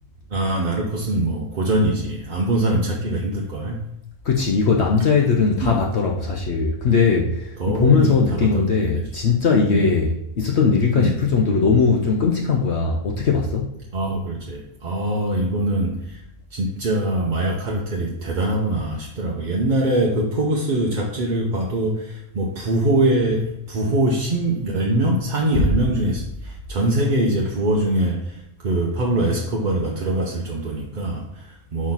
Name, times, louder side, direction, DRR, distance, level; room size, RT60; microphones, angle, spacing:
voice 1, 0.3-3.8 5.6-5.8 7.6-8.9 9.5-9.9 11.0-11.1 13.9-16.2 16.5-31.9, right 1 dB, 45° right, -1 dB, 0.8 m, -23 dB
voice 2, 4.2-13.7, left 5 dB, 60° left, 0 dB, 1.0 m, -19 dB
4.8 x 4.3 x 5.5 m, 0.83 s
omnidirectional pair, 1.4 m